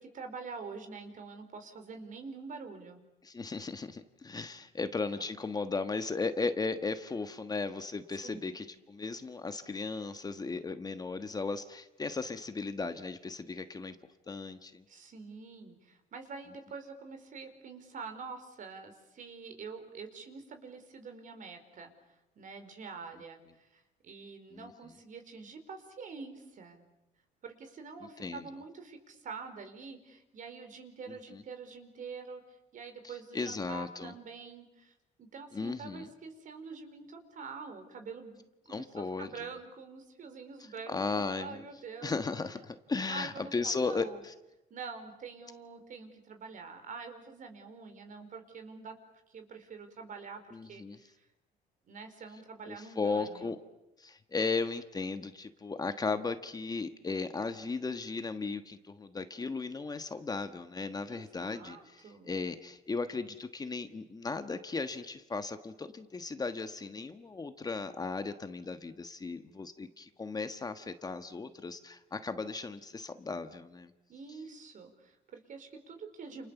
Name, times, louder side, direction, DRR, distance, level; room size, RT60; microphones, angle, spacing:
voice 1, 0.0-3.0 4.8-5.3 8.2-8.5 14.9-21.9 22.3-26.9 27.4-42.1 43.1-44.2 44.7-49.0 49.3-51.1 51.8-53.5 61.1-62.4 74.1-76.5, right 4 dB, 50° right, 7 dB, 4.8 m, -46 dB
voice 2, 3.2-14.0 14.3-14.8 24.5-24.7 28.2-28.4 31.1-31.4 33.0-34.1 35.5-36.1 38.7-39.3 40.9-41.6 42.0-44.3 50.5-51.0 52.7-53.6 54.0-73.9, left 4 dB, 20° left, 9 dB, 1.4 m, -36 dB
29.0 x 28.5 x 7.2 m, 0.93 s
cardioid pair, 110°, 17 cm